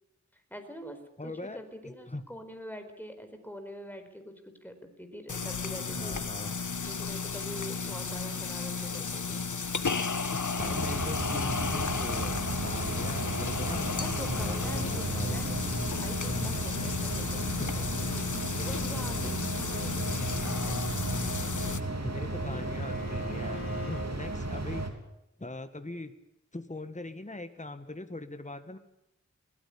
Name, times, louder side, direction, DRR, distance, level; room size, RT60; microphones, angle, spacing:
voice 1, 0.3-6.2 6.8-9.4 14.0-20.9 22.4-23.5, equal, 5° left, 6 dB, 4.6 m, -45 dB
voice 2, 1.2-2.2 5.9-6.6 7.8-8.1 9.9-14.0 14.3-15.4 17.6-17.8 21.7-24.9 25.4-26.1 26.5-28.8, left 2 dB, 25° left, 9 dB, 1.7 m, -41 dB
sound 1, 5.3-21.8, left 5 dB, 85° left, 1.2 m, -33 dB
sound 2, 10.6-24.9, right 2 dB, 60° right, 3.4 m, -34 dB
Bowed string instrument, 20.9-24.1, left 3 dB, 45° left, 3.1 m, -46 dB
21.0 x 19.0 x 8.6 m, 0.82 s
wide cardioid pair, 50°, 30 cm